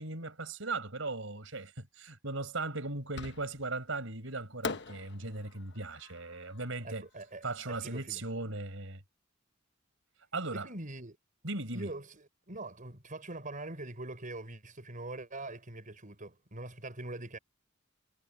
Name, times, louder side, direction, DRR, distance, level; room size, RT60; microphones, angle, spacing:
voice 1, 0.0-7.1 7.4-9.0 10.3-10.7 11.4-11.9, right 3 dB, 70° right, 6.5 m, -38 dB
Fireworks, 3.2-3.8 4.6-7.8, left 4 dB, 60° left, 1.1 m, -43 dB
voice 2, 6.8-7.4 7.8-8.2 10.5-11.2 11.7-17.4, right 2 dB, 40° right, 5.7 m, -43 dB
head